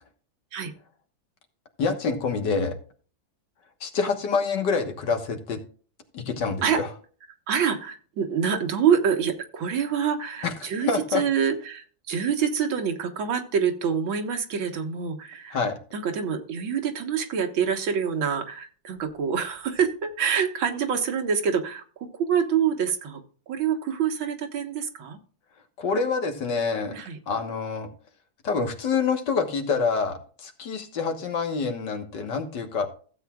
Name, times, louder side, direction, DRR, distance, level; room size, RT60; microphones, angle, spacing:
voice 1, 1.8-2.8 3.8-5.6 6.1-6.9 10.4-10.5 10.8-11.2 15.5-15.8 25.8-27.0 27.3-27.9 28.4-32.9, left 4 dB, 65° left, 6 dB, 2.0 m, -26 dB
voice 2, 7.5-15.6 15.9-23.2 23.5-25.2 26.9-27.2, right 7 dB, 90° right, 5 dB, 2.1 m, -26 dB
15.5 x 8.2 x 2.4 m, 0.41 s
omnidirectional pair, 2.1 m